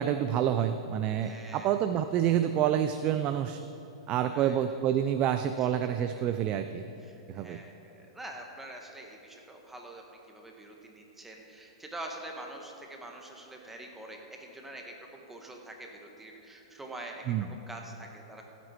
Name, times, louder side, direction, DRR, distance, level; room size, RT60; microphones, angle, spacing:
voice 1, 0.0-3.6 4.1-6.8 7.3-7.6 17.3-17.5, right 10 dB, 35° right, 9 dB, 0.4 m, -28 dB
voice 2, 1.2-1.7 4.3-4.6 7.0-17.2 17.5-18.4, right 1 dB, 10° right, 1 dB, 1.6 m, -45 dB
15.5 x 8.3 x 4.5 m, 3.0 s
hypercardioid pair, 115°, 3 cm